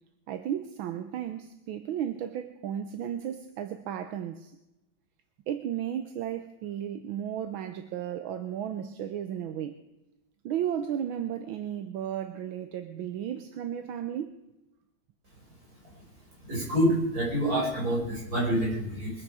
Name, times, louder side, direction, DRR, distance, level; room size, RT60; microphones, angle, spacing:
voice 1, 0.3-4.5 5.5-9.7 10.4-14.3, right 10 dB, 80° right, 9 dB, 1.6 m, -34 dB
voice 2, 16.5-19.1, equal, 45° right, -4 dB, 5.9 m, -27 dB
23.0 x 9.5 x 4.8 m, 0.94 s
omnidirectional pair, 2.2 m